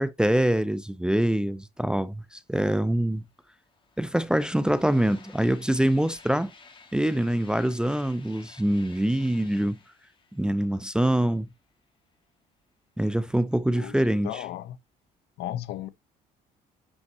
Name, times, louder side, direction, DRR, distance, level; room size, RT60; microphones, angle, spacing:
voice 1, 0.0-3.2 4.0-6.5 6.9-9.8 10.3-11.5 13.0-14.4, right 1 dB, 5° right, 0.4 m, -24 dB
sound 1, 3.1-11.7, left 4 dB, 30° left, 1.8 m, -53 dB
voice 2, 14.2-14.8 15.4-15.9, left 12 dB, 75° left, 0.8 m, -34 dB
8.2 x 5.5 x 3.0 m
cardioid pair, 110°, 17 cm